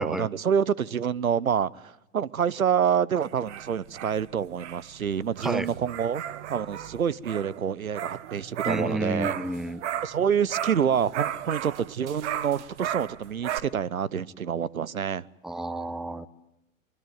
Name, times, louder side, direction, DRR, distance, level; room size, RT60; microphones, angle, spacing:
voice 1, 0.0-6.2 6.5-9.3 10.0-15.2, right 8 dB, 85° right, 23 dB, 0.9 m, -27 dB
sound 1, 3.2-10.2 10.5-13.6, right 10 dB, 55° right, 1.4 m, -35 dB
voice 2, 8.7-9.8 15.4-16.3, right 1 dB, ahead, 16 dB, 1.0 m, -31 dB
24.0 x 23.0 x 9.3 m, 0.88 s
figure-of-eight pair, 100°, 41 cm